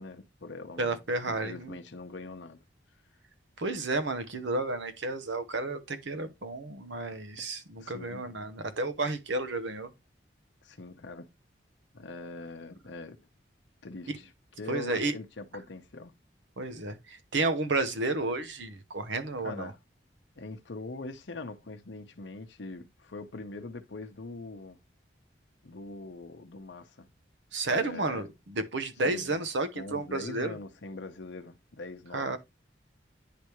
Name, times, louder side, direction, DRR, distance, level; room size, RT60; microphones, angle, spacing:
voice 1, 0.0-1.0 1.3-2.6 7.4-7.5 7.8-8.2 10.6-11.3 11.9-13.2 13.8-14.3 14.6-16.1 19.4-19.8 20.4-24.8 25.6-27.1 27.7-28.3 29.0-29.4 29.8-32.4, left 3 dB, 80° left, 0.8 m, -42 dB
voice 2, 0.8-1.8 3.6-9.9 14.7-15.1 16.6-19.7 27.5-30.5 32.1-32.4, right 2 dB, 80° right, 0.9 m, -32 dB
10.0 x 3.4 x 3.0 m
head